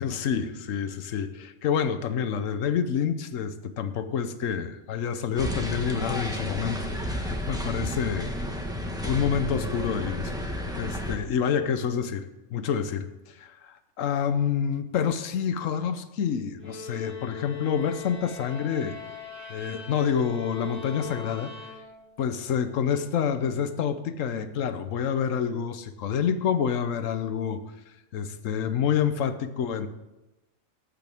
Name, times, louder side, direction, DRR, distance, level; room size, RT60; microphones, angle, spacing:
voice 1, 0.0-8.3 9.0-12.3 12.5-19.0 19.5-21.5 22.2-27.6 28.1-29.9, left 7 dB, 75° left, 11 dB, 1.1 m, -28 dB
sound 1, 5.4-11.2, left 1 dB, 5° right, 1.2 m, -32 dB
sound 2, 16.6-22.3, left 6 dB, 55° right, 3.1 m, -40 dB
18.0 x 8.2 x 3.5 m, 1.0 s
omnidirectional pair, 1.4 m